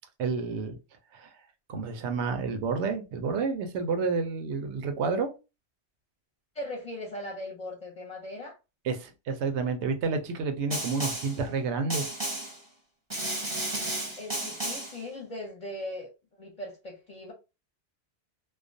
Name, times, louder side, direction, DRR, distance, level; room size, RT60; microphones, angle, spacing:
voice 1, 0.2-0.8 1.1-1.3 1.7-5.3 8.8-12.1, right 4 dB, 85° right, 0.9 m, -30 dB
voice 2, 6.5-8.6 14.2-16.1 16.4-17.3, left 1 dB, 40° left, 0.6 m, -39 dB
Snare drum, 10.7-11.4 11.9-12.6 13.1-15.0, right 1 dB, 20° right, 0.7 m, -33 dB
2.3 x 2.1 x 2.5 m
omnidirectional pair, 1.1 m